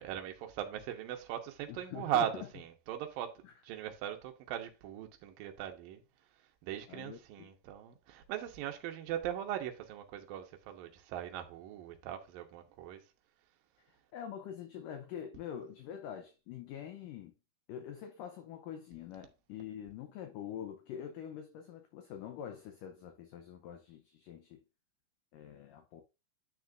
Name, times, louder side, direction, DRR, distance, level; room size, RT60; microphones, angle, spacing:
voice 1, 0.0-6.0 6.6-13.0, right 11 dB, 70° right, 2.5 m, -39 dB
voice 2, 1.7-2.5 3.4-3.5 6.9-7.5 14.1-17.3 17.7-24.6 25.3-26.0, left 9 dB, 75° left, 2.0 m, -45 dB
9.8 x 6.2 x 2.5 m
omnidirectional pair, 4.6 m